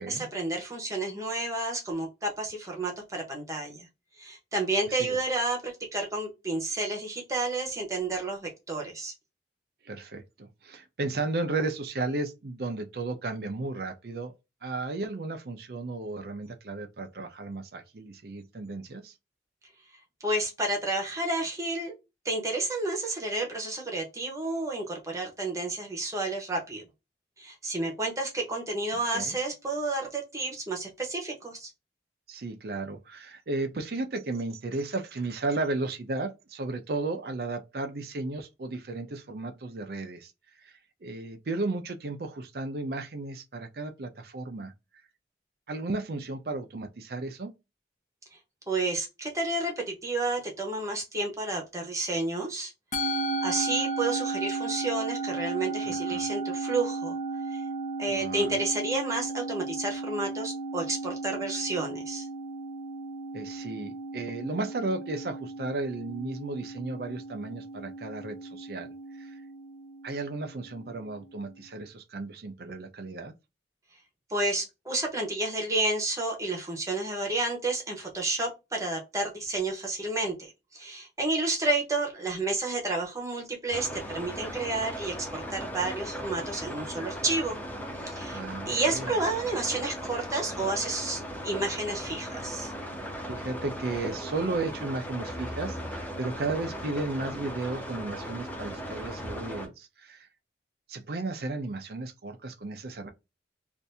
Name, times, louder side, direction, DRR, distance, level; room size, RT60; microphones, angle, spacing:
voice 1, 0.0-3.9 4.2-9.1 20.2-21.9 22.2-26.8 27.4-31.7 48.7-52.7 53.0-57.2 57.5-57.6 58.0-62.3 74.3-87.6 88.0-88.4 88.7-92.7, right 2 dB, 15° right, 0.9 m, -31 dB
voice 2, 9.8-14.3 14.6-19.1 29.1-29.4 32.3-40.3 40.6-40.7 41.0-44.7 45.7-47.5 55.9-56.3 58.1-58.6 63.3-69.4 70.0-73.3 88.3-89.1 93.3-100.3 100.9-103.1, right 2 dB, 55° right, 0.5 m, -34 dB
Musical instrument, 52.9-71.4, right 3 dB, 45° left, 0.7 m, -35 dB
sound 1, 83.7-99.7, equal, 10° left, 0.5 m, -38 dB
2.7 x 2.5 x 3.3 m
head